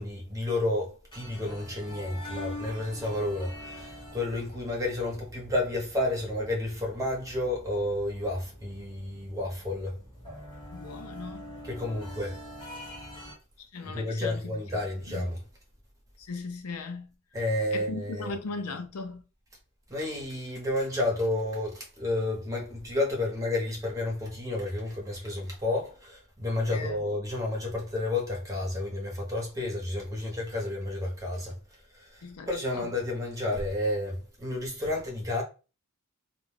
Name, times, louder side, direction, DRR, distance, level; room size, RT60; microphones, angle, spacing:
voice 1, 0.0-9.9 11.6-12.3 13.8-15.4 17.3-18.3 19.9-31.5 31.9-35.4, left 1 dB, 15° right, 0.9 m, -31 dB
sound 1, 1.1-13.3, left 1 dB, 20° left, 1.2 m, -45 dB
voice 2, 10.7-11.6 13.7-14.6 15.1-15.3 16.2-17.1 17.7-19.2 26.7-27.0 32.2-32.9, left 3 dB, 80° left, 0.6 m, -38 dB
2.4 x 2.3 x 3.3 m
head